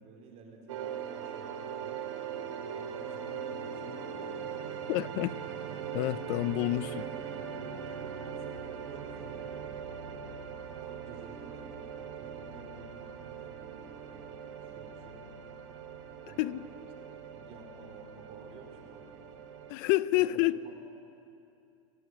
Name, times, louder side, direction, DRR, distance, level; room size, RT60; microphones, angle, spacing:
voice 1, 0.0-2.0 2.6-4.6 5.0-5.5 7.0-7.2 7.8-9.6 10.8-15.3 16.2-16.5 17.3-19.5 20.1-20.4 20.6-20.7, right 4 dB, 40° right, 2 dB, 4.4 m, -52 dB
sound 1, 0.7-19.7, right 7 dB, 80° right, 2.7 m, -41 dB
voice 2, 4.9-5.3 5.9-7.0 16.4-16.7 19.7-20.6, left 17 dB, 50° left, 17 dB, 0.7 m, -28 dB
29.0 x 18.5 x 8.1 m, 2.6 s
supercardioid pair, 130°, 16 cm